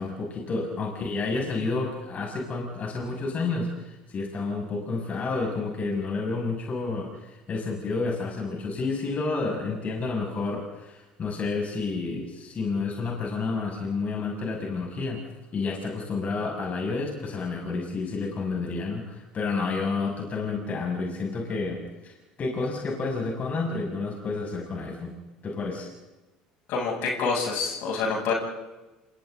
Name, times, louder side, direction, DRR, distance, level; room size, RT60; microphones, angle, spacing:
voice 1, 0.0-15.2 15.5-25.1 25.4-25.9, left 3 dB, 40° left, -1 dB, 6.5 m, -30 dB
voice 2, 26.7-28.3, left 4 dB, 60° left, -1 dB, 7.6 m, -27 dB
29.0 x 27.5 x 3.9 m, 1.1 s
hypercardioid pair, 65°, 4 cm